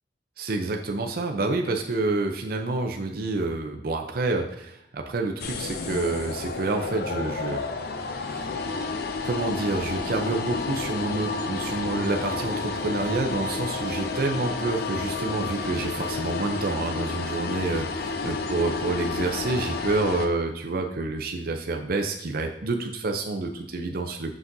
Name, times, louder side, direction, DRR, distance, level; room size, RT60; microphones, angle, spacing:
voice 1, 0.4-7.7 8.4-8.5 9.2-17.9 18.2-24.4, right 3 dB, 55° right, 3 dB, 0.6 m, -28 dB
sound 1, 5.4-20.3, left 4 dB, 60° left, 0.6 m, -31 dB
6.1 x 5.9 x 2.6 m, 0.83 s
head